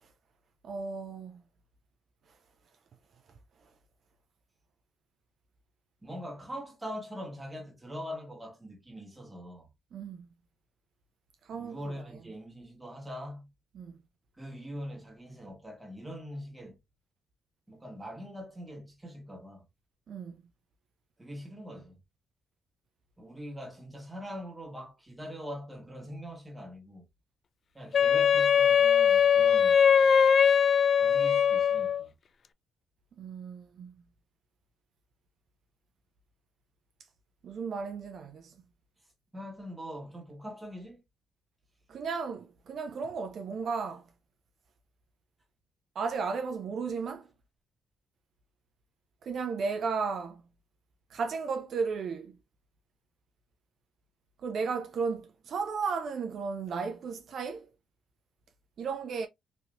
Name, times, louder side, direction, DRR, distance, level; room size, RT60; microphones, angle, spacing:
voice 1, 0.6-1.4 9.9-10.2 11.5-11.8 13.8-13.9 20.1-20.4 33.2-33.9 37.4-38.5 41.9-44.0 46.0-47.2 49.2-50.4 51.1-52.3 54.4-57.7 58.8-59.3, right 5 dB, 60° right, 0.4 m, -34 dB
voice 2, 6.0-9.7 11.5-13.5 14.4-16.8 17.7-19.6 21.2-22.0 23.2-27.0 27.7-29.9 31.0-32.1 39.3-41.0, equal, 10° right, 1.3 m, -42 dB
Wind instrument woodwind instrument, 27.9-32.0, left 7 dB, 50° left, 0.3 m, -21 dB
3.1 x 2.8 x 2.6 m
cardioid pair, 90°, 0 cm